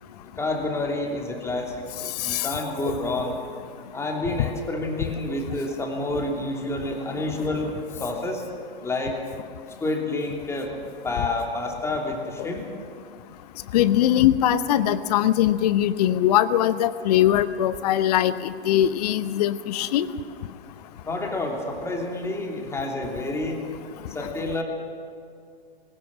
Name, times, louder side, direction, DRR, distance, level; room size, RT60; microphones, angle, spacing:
voice 1, 0.4-3.4 3.9-7.7 8.0-8.4 8.8-9.2 9.8-10.7 11.0-12.6 21.0-23.6 24.1-24.6, left 2 dB, 10° left, 1 dB, 2.9 m, -29 dB
voice 2, 13.7-18.3 18.7-20.1, left 12 dB, 40° left, 15 dB, 0.9 m, -21 dB
21.0 x 19.0 x 7.4 m, 2.2 s
figure-of-eight pair, 110°, 32 cm